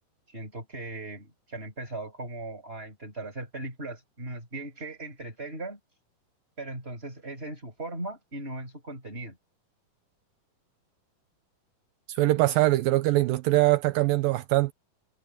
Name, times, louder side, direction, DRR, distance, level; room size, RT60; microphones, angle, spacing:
voice 1, 0.3-5.8 6.6-9.4, right 2 dB, 15° right, 7.0 m, -38 dB
voice 2, 12.1-14.7, right 18 dB, 80° right, 2.4 m, -22 dB
omnidirectional pair, 4.2 m